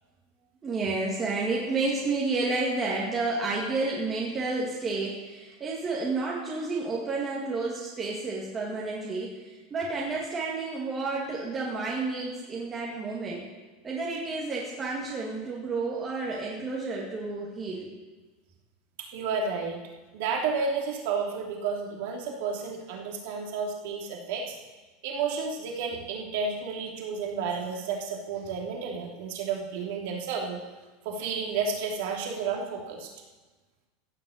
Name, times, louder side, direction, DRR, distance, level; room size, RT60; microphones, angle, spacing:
voice 1, 0.6-13.4 13.8-17.9, right 3 dB, 20° right, -4 dB, 2.1 m, -30 dB
voice 2, 19.0-19.8 20.1-24.5 25.0-30.6 31.0-33.1, right 5 dB, 70° right, 0 dB, 2.8 m, -31 dB
15.5 x 5.9 x 7.9 m, 1.2 s
supercardioid pair, 150°, 0 cm